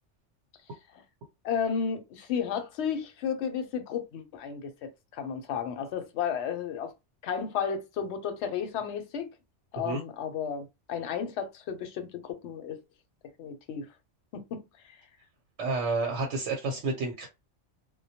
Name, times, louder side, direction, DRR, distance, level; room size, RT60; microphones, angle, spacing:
voice 1, 1.4-6.9 7.2-9.3 9.7-12.8 13.4-13.9 14.3-14.6, left 7 dB, 75° left, 0.8 m, -33 dB
voice 2, 15.6-17.3, right 3 dB, 80° right, 1.0 m, -30 dB
2.1 x 2.1 x 2.7 m
omnidirectional pair, 1.2 m